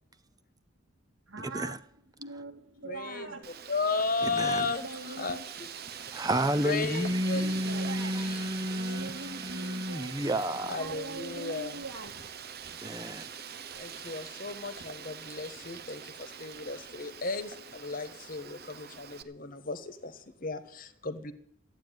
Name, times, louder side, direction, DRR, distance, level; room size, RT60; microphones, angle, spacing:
voice 1, 1.3-1.7 2.2-3.4 4.6-5.4 6.4-8.1 8.8-10.1 10.5-12.1, right 2 dB, 80° right, 2.5 m, -43 dB
voice 2, 2.8-5.7 6.6-8.8 10.7-11.8 13.8-21.3, left 3 dB, 40° left, 1.4 m, -35 dB
Wind, 3.4-19.2, right 7 dB, 50° right, 0.9 m, -43 dB
voice 3, 4.2-4.7 6.1-10.7 12.8-13.3, right 1 dB, 20° right, 0.6 m, -31 dB
14.0 x 9.2 x 9.3 m
head